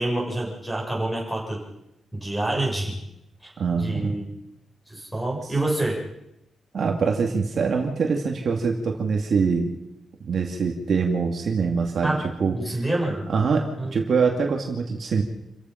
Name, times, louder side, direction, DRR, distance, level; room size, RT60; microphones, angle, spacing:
voice 1, 0.0-1.6 2.1-2.9 3.4-4.3 4.9-6.0 12.0-12.3 12.5-13.3 13.8-13.9, right 2 dB, ahead, -2 dB, 7.0 m, -27 dB
voice 2, 3.6-4.1 6.7-9.7 10.2-12.7 13.3-15.2, right 5 dB, 45° right, 1 dB, 2.2 m, -24 dB
28.5 x 15.5 x 5.8 m, 0.85 s
wide cardioid pair, 160°, 0 cm